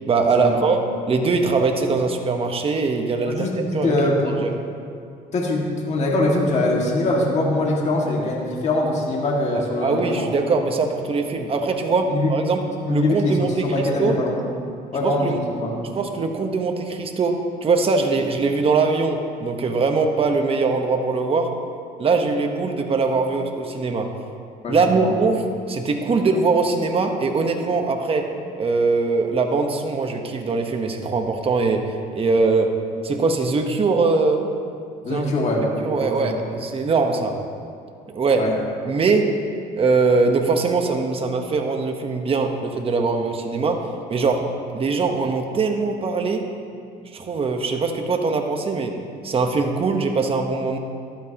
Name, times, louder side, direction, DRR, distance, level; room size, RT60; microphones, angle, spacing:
voice 1, 0.1-4.0 4.4-4.5 9.8-12.6 12.9-14.2 15.0-15.4 15.9-21.5 22.0-24.1 24.7-28.3 28.6-32.7 33.0-34.5 35.1-35.2 35.8-37.4 38.1-38.5 38.8-39.3 39.8-46.4 47.1-49.0 49.2-50.8, right 4 dB, 35° right, 4 dB, 1.1 m, -22 dB
voice 2, 3.3-4.4 5.3-10.3 12.1-12.3 12.9-14.4 14.9-15.7 24.6-25.1 35.0-35.6 36.0-36.3 38.4-38.5, left 2 dB, 40° left, -2 dB, 2.1 m, -22 dB
14.5 x 12.0 x 2.9 m, 2.3 s
cardioid pair, 110°, 17 cm